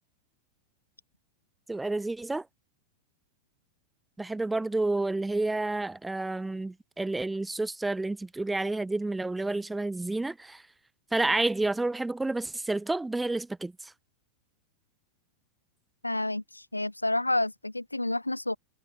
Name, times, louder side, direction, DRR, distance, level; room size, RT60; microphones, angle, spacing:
voice 1, 1.7-2.5 4.2-10.6 11.1-13.9, right 2 dB, 5° right, 0.6 m, -30 dB
voice 2, 16.0-18.6, left 2 dB, 85° left, 0.6 m, -29 dB
figure-of-eight pair, 90°, 0 cm